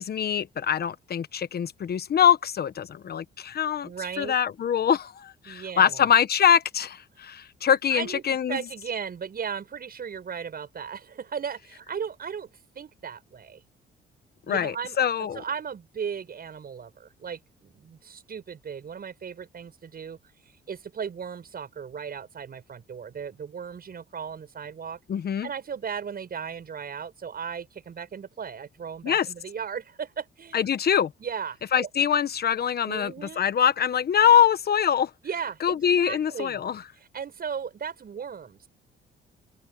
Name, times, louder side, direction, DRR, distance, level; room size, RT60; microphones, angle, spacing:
voice 1, 0.0-3.9 4.2-8.6 14.5-15.4 25.1-25.5 29.0-29.3 30.5-31.1 31.7-35.1 35.6-36.8, left 8 dB, 50° left, 1.1 m, -23 dB
voice 2, 3.8-4.4 5.5-6.1 7.2-7.3 7.9-12.5 12.7-13.6 14.5-20.2 20.7-25.0 25.4-30.7 31.2-31.9 32.9-33.5 35.2-36.6 37.0-38.7, right 7 dB, 50° right, 7.4 m, -36 dB
cardioid pair, 90°, 20 cm